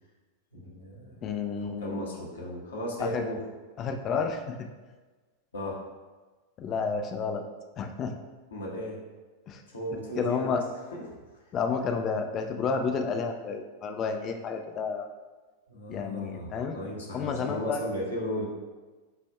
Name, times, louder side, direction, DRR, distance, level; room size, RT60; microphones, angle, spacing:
voice 1, 0.5-1.2 1.5-3.4 5.5-5.8 8.5-9.0 9.7-10.6 10.9-11.0 15.7-18.4, equal, 70° left, -3 dB, 1.1 m, -35 dB
voice 2, 1.2-2.0 3.0-3.2 3.8-4.5 6.6-7.4 7.8-8.1 9.5-9.6 10.2-10.6 11.5-15.1 15.9-16.8 17.1-17.8, left 5 dB, 30° left, 5 dB, 0.4 m, -30 dB
7.5 x 2.5 x 2.3 m, 1.3 s
figure-of-eight pair, 90°, 0 cm